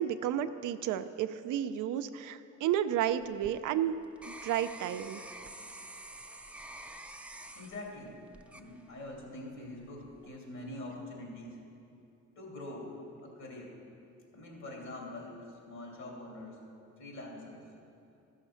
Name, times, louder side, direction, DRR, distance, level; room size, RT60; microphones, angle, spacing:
voice 1, 0.0-3.9 4.3-5.2, right 10 dB, 80° right, 10 dB, 0.5 m, -32 dB
sound 1, 3.1-9.3 9.8-10.3, right 1 dB, 5° right, 0.5 m, -48 dB
voice 2, 7.5-8.1 8.5-11.6 12.4-12.9 13.2-13.8 14.3-16.6 17.0-17.6, left 1 dB, 70° left, -2 dB, 3.1 m, -44 dB
14.0 x 6.4 x 5.7 m, 2.6 s
cardioid pair, 90°, 30 cm